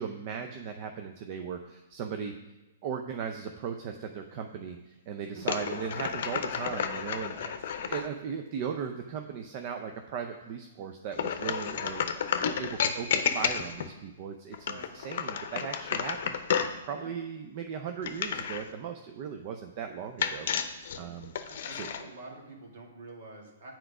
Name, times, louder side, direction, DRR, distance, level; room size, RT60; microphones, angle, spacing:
voice 1, 0.0-2.3 2.8-7.3 7.8-21.3 21.7-21.9, right 7 dB, 45° right, 6 dB, 0.6 m, -38 dB
sound 1, 5.4-8.1 11.1-13.9 14.5-16.8 18.0-18.7 20.2-22.0, left 7 dB, 60° left, 0.7 m, -31 dB
voice 2, 21.4-23.7, right 2 dB, 60° right, 1 dB, 1.9 m, -47 dB
7.9 x 4.5 x 4.9 m, 1.1 s
hypercardioid pair, 125°, 0 cm